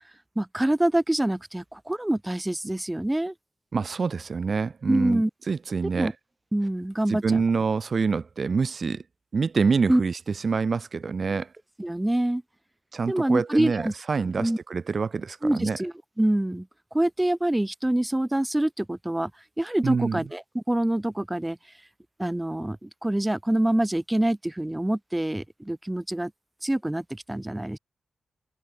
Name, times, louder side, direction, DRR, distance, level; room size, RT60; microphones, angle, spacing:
voice 1, 0.4-3.3 4.9-5.3 6.0-6.1 6.5-7.4 9.9-10.0 11.8-12.4 13.1-13.9 14.4-14.6 15.4-16.7 16.9-19.3 19.6-21.6 22.2-26.3 26.6-27.8, right 1 dB, 15° right, 0.8 m, -25 dB
voice 2, 3.7-6.1 7.1-9.0 9.3-11.5 12.9-15.8 19.8-20.2, right 5 dB, 55° right, 3.2 m, -26 dB
cardioid pair, 50°, 0 cm